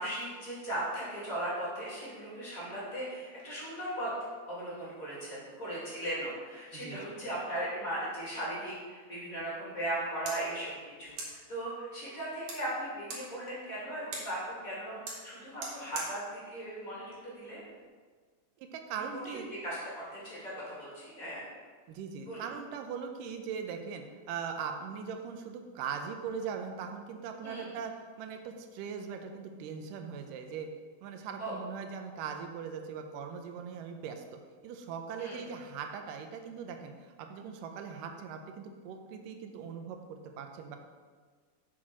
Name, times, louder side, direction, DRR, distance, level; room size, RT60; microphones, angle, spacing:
voice 1, 0.0-4.1 4.4-10.7 11.0-17.6 19.2-21.4 22.3-22.5 27.4-27.7 31.4-31.5 35.2-35.4, right 1 dB, 25° left, -7 dB, 2.7 m, -38 dB
voice 2, 6.7-7.0 18.6-19.5 21.9-30.7 31.0-34.2 34.6-40.8, right 6 dB, 85° right, 5 dB, 2.3 m, -40 dB
sound 1, 9.8-17.9, right 2 dB, 65° right, 2.9 m, -46 dB
6.4 x 6.0 x 5.9 m, 1.5 s
omnidirectional pair, 3.8 m